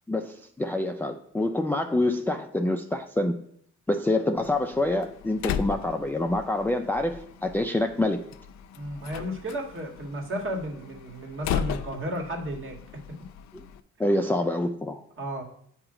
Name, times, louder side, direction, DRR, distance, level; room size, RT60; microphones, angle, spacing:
voice 1, 0.1-3.4 3.9-8.2 13.5-13.6 14.0-15.0, left 1 dB, 5° left, 5 dB, 0.4 m, -26 dB
Slam, 4.4-13.8, left 8 dB, 65° left, 0.5 m, -37 dB
voice 2, 8.7-12.8 15.2-15.4, right 1 dB, 45° right, 0 dB, 1.8 m, -33 dB
8.5 x 2.9 x 4.9 m, 0.65 s
cardioid pair, 90°, 30 cm